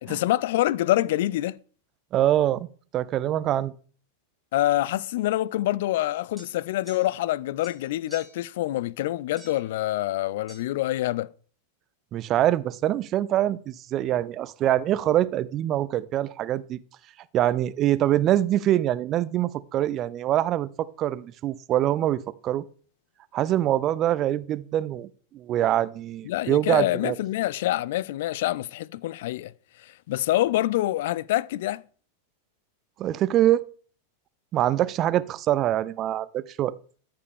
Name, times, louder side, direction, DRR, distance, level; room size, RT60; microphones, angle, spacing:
voice 1, 0.0-1.6 4.5-11.3 26.2-29.5 30.1-31.8, left 15 dB, 55° left, 0.3 m, -26 dB
voice 2, 2.1-2.7 2.9-3.7 12.1-16.8 17.3-22.6 23.3-25.1 25.3-27.2 33.0-33.6 34.5-36.7, right 12 dB, 35° right, 0.4 m, -24 dB
sound 1, 6.4-7.3 7.6-8.5 9.4-9.7 10.5-10.6, right 1 dB, ahead, 2.1 m, -50 dB
13.5 x 5.2 x 3.4 m
figure-of-eight pair, 90°, 0 cm